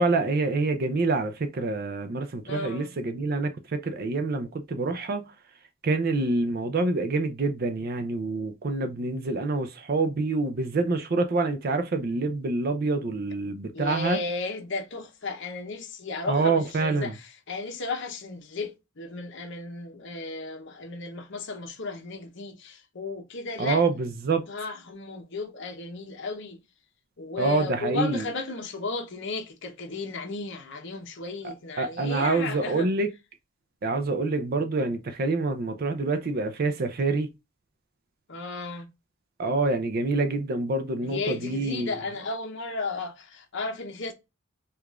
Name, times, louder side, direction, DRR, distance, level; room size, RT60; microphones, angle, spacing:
voice 1, 0.0-5.3 5.8-14.2 16.3-17.1 23.6-24.5 27.4-28.2 31.4-33.1 33.8-37.3 39.4-41.9, right 3 dB, 45° right, 0.4 m, -26 dB
voice 2, 2.4-2.9 13.7-23.8 24.5-26.6 27.2-32.9 38.3-38.9 41.0-44.1, left 3 dB, 60° left, 0.8 m, -34 dB
4.7 x 2.4 x 2.3 m
head